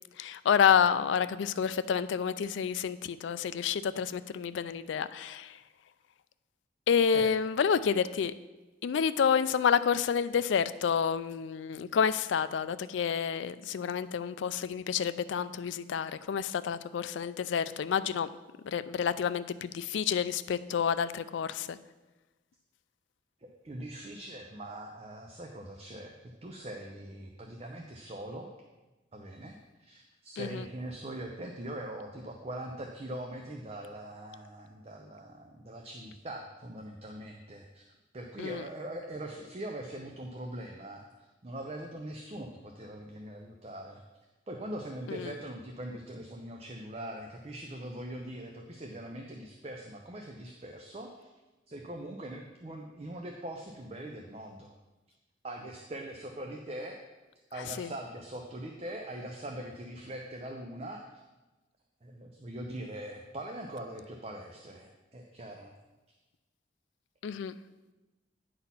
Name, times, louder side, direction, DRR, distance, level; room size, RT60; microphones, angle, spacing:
voice 1, 0.2-5.5 6.9-8.3 8.8-18.3 18.7-21.8 30.4-30.6 38.4-38.6 45.1-45.3 57.8-57.9 67.2-67.5, left 7 dB, 80° left, 14 dB, 0.3 m, -29 dB
voice 2, 23.4-26.1 26.4-28.5 29.1-37.8 38.1-44.0 44.5-51.3 51.7-54.7 55.4-57.0 57.5-61.2 62.0-65.7, right 1 dB, 35° right, 3 dB, 0.6 m, -42 dB
9.5 x 4.2 x 5.6 m, 1.1 s
head